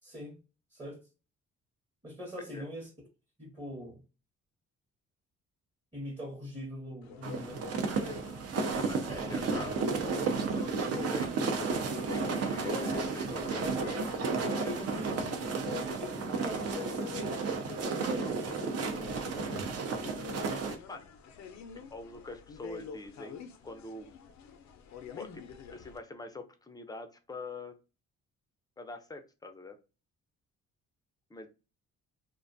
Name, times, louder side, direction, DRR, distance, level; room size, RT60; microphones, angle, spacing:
voice 1, 0.0-0.4 0.7-1.0 2.0-2.9 3.4-4.0 5.9-7.6 14.6-15.1 16.0-18.8 19.7-19.9, equal, 15° right, 0.9 m, -42 dB
voice 2, 2.4-2.7 8.8-11.4 12.1-14.0 20.9-21.0 21.7-23.4 23.6-24.1 25.1-27.8 28.8-29.8 31.3-31.5, left 2 dB, 15° left, 0.5 m, -44 dB
sound 1, 7.0-26.0, left 8 dB, 65° left, 0.5 m, -46 dB
sound 2, 7.2-20.7, right 4 dB, 55° right, 0.6 m, -33 dB
2.5 x 2.2 x 2.5 m
cardioid pair, 90°, 30 cm